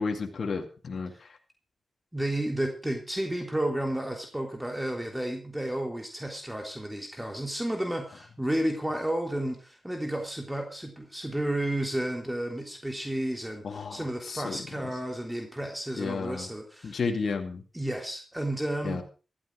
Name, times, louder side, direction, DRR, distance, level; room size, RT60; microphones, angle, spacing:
voice 1, 0.0-1.4 13.6-14.9 16.0-16.5 16.8-17.6 18.8-19.0, left 4 dB, 65° left, 5 dB, 2.4 m, -32 dB
voice 2, 2.1-17.0 17.7-19.0, right 1 dB, 10° right, 3 dB, 3.4 m, -32 dB
15.0 x 13.0 x 4.7 m, 0.35 s
supercardioid pair, 40°, 0 cm